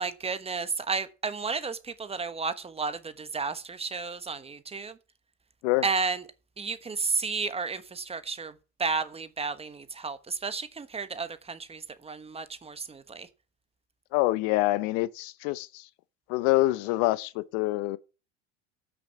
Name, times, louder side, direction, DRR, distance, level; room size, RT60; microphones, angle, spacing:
voice 1, 0.0-5.0 5.8-6.2 6.6-8.5 8.8-13.3, right 4 dB, 20° right, 1.2 m, -32 dB
voice 2, 14.1-15.9 16.3-18.0, left 19 dB, 60° left, 0.7 m, -26 dB
13.5 x 6.3 x 5.9 m
hypercardioid pair, 95°, 33 cm